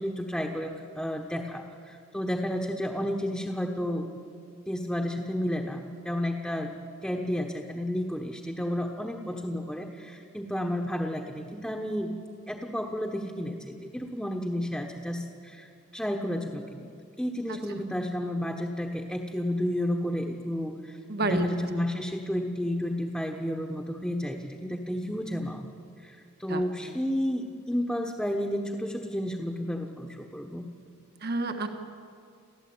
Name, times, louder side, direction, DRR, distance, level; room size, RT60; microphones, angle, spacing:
voice 1, 0.0-4.1 4.7-6.7 7.0-12.1 12.5-15.7 15.9-16.9 17.2-25.6 26.0-30.7, equal, 5° left, 1 dB, 1.2 m, -31 dB
voice 2, 21.1-21.4 26.5-26.6 31.2-31.7, right 2 dB, 45° right, 6 dB, 1.5 m, -29 dB
29.5 x 13.5 x 8.8 m, 2.2 s
head